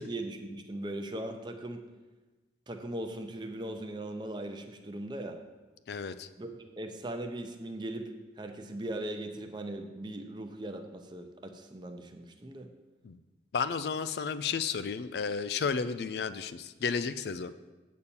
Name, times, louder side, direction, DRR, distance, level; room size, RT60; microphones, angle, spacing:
voice 1, 0.0-1.9 2.7-5.4 6.4-12.7, right 1 dB, 25° right, 5 dB, 0.7 m, -39 dB
voice 2, 5.9-6.3 13.0-13.2 13.5-17.5, left 5 dB, 65° left, 13 dB, 0.4 m, -32 dB
8.3 x 4.2 x 7.0 m, 1.2 s
head